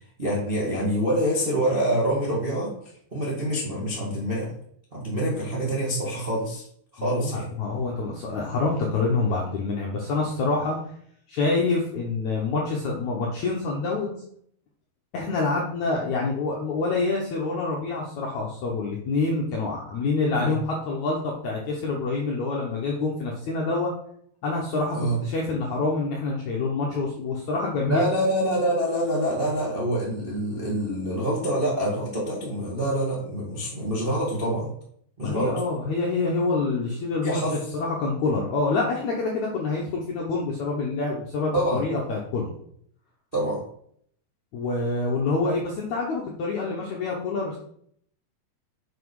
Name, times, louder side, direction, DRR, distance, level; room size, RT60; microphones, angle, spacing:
voice 1, 0.2-2.7 3.1-4.5 4.9-6.6 6.9-7.5 20.4-20.5 24.9-25.2 27.9-34.7 35.2-35.6 37.2-37.6 41.5-41.9 43.3-43.6, right 1 dB, 65° right, -5 dB, 0.5 m, -26 dB
voice 2, 7.1-10.8 11.3-14.2 15.1-23.9 24.4-28.1 35.2-42.5 44.5-47.6, left 3 dB, 75° left, -2 dB, 1.7 m, -26 dB
7.6 x 6.0 x 4.8 m, 0.66 s
omnidirectional pair, 4.8 m